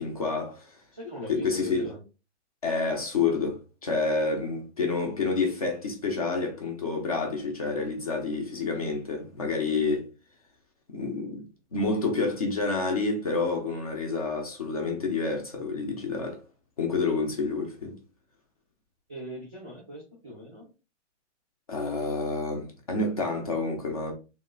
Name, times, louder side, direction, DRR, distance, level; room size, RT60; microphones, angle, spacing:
voice 1, 0.0-0.8 1.3-1.9 2.6-10.0 10.9-11.4 11.7-16.4 16.8-18.0 21.7-24.1, left 3 dB, 30° left, 0.7 m, -28 dB
voice 2, 0.9-2.0 19.1-20.7, equal, 5° right, 0.6 m, -40 dB
3.1 x 2.8 x 3.8 m
hypercardioid pair, 180°, 36 cm